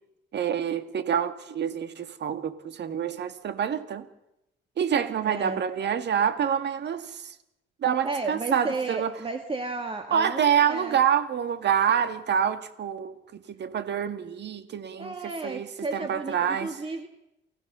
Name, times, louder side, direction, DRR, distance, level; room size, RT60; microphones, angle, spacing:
voice 1, 0.3-4.1 4.8-7.3 7.8-9.1 10.1-15.1 15.4-15.7 15.9-16.8, right 8 dB, 60° right, 1.9 m, -27 dB
voice 2, 5.2-5.6 8.0-11.0 15.0-17.1, right 3 dB, 25° right, 2.0 m, -33 dB
28.5 x 15.5 x 6.8 m
cardioid pair, 90°, 20 cm